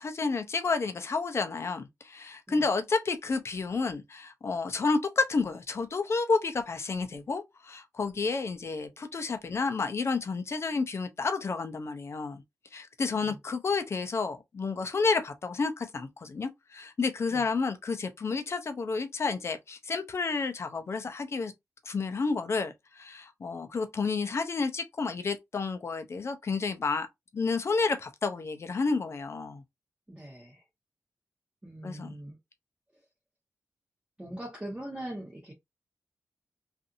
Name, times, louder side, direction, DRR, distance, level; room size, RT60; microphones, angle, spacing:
voice 1, 0.0-12.4 12.7-21.5 21.8-27.1 27.3-29.6 31.8-32.2, left 4 dB, 50° left, 0.6 m, -30 dB
voice 2, 13.1-13.4 17.3-17.4 30.1-30.6 31.6-32.4 34.2-35.5, right 1 dB, 15° right, 1.0 m, -41 dB
2.5 x 2.5 x 2.6 m
cardioid pair, 80°, 6 cm